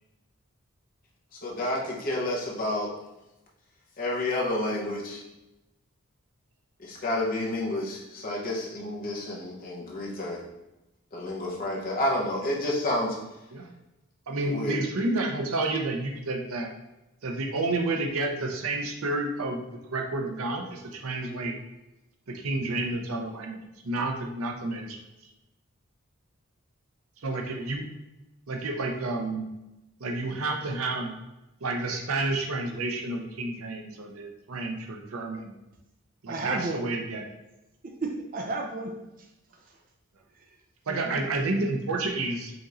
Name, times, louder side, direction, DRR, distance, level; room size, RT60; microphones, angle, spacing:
voice 1, 1.4-2.9 4.0-5.2 6.8-10.4 11.1-13.2 14.4-14.8, left 1 dB, 40° left, -3 dB, 0.8 m, -30 dB
voice 2, 14.3-16.7 17.2-21.6 22.3-23.6 23.8-25.0 27.2-27.8 28.5-29.5 30.0-31.2 31.6-35.5 36.2-37.3 40.9-42.5, right 2 dB, 80° right, 3 dB, 0.6 m, -30 dB
voice 3, 36.3-36.8 37.8-39.3 40.9-41.3, right 2 dB, 40° right, 3 dB, 0.4 m, -33 dB
5.1 x 3.0 x 2.5 m, 0.96 s
head